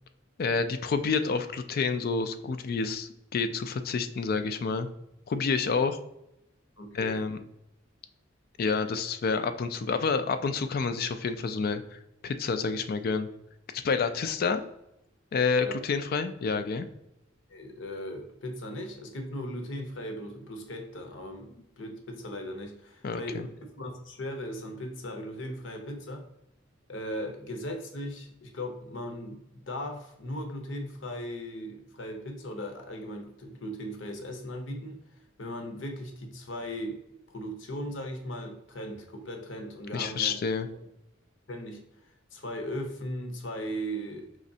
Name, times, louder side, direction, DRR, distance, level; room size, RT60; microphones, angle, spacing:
voice 1, 0.4-4.9 5.3-6.0 6.9-7.4 8.6-13.3 13.7-14.6 15.3-16.9 23.0-23.5 39.9-40.7, left 5 dB, 50° left, 9 dB, 0.3 m, -29 dB
voice 2, 6.8-7.2 15.5-15.7 17.5-21.5 21.8-26.3 26.9-35.0 35.4-37.0 37.3-40.4 41.5-41.8 42.3-44.3, equal, 65° left, 4 dB, 0.8 m, -38 dB
5.0 x 3.1 x 2.7 m, 0.84 s
head